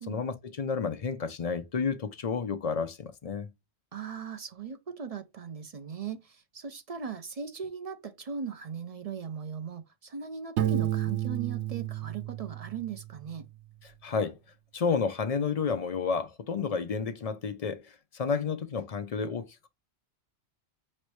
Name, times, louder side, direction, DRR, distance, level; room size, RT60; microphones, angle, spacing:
voice 1, 0.1-3.5 13.8-14.4 14.7-19.7, left 5 dB, 45° left, 0.5 m, -31 dB
voice 2, 3.9-13.4, right 6 dB, 45° right, 0.5 m, -38 dB
Piano, 10.6-13.3, right 12 dB, 90° right, 0.9 m, -31 dB
5.1 x 3.2 x 3.1 m
omnidirectional pair, 1.1 m